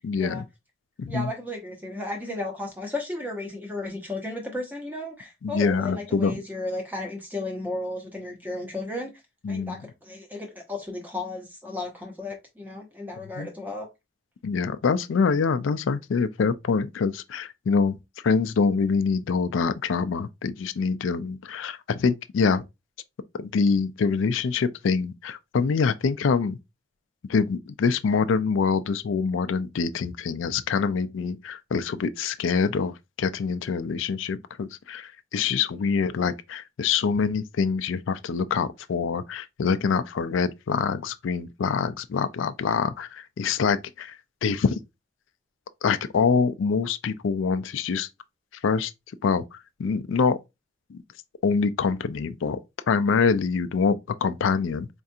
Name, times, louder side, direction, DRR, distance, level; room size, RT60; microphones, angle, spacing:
voice 1, 0.0-0.4 1.0-1.3 5.4-6.4 9.4-9.8 13.4-13.5 14.4-18.0 18.2-22.6 23.4-26.6 27.3-44.8 45.8-48.1 48.6-48.9 49.2-50.4 50.9-51.0 51.4-52.6 52.9-54.9, left 5 dB, 85° left, 0.4 m, -25 dB
voice 2, 1.1-9.1 9.5-13.9, left 2 dB, 10° right, 0.9 m, -34 dB
4.4 x 2.4 x 2.7 m
head